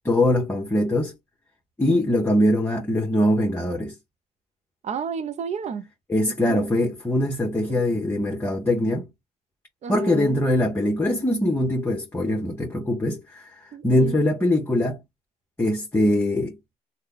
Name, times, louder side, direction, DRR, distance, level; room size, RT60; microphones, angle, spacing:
voice 1, 0.0-1.1 1.8-3.9 6.1-9.1 9.9-15.0 15.6-16.5, left 1 dB, 15° left, 0.9 m, -22 dB
voice 2, 4.8-5.9 6.5-6.7 7.7-7.8 9.8-10.4 13.7-14.2, right 6 dB, 40° right, 0.5 m, -31 dB
3.1 x 2.2 x 3.8 m
cardioid pair, 110°, 17 cm